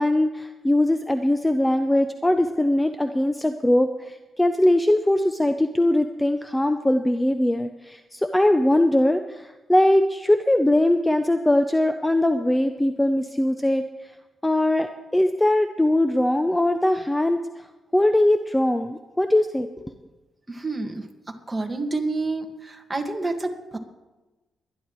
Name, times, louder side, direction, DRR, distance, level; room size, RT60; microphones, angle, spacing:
voice 1, 0.0-13.9 14.4-17.6 17.9-19.9, left 1 dB, 10° left, 8 dB, 0.6 m, -21 dB
voice 2, 20.5-21.1 21.5-23.8, right 3 dB, 20° right, 4 dB, 1.8 m, -28 dB
23.0 x 10.5 x 3.1 m, 1.1 s
cardioid pair, 95°, 0 cm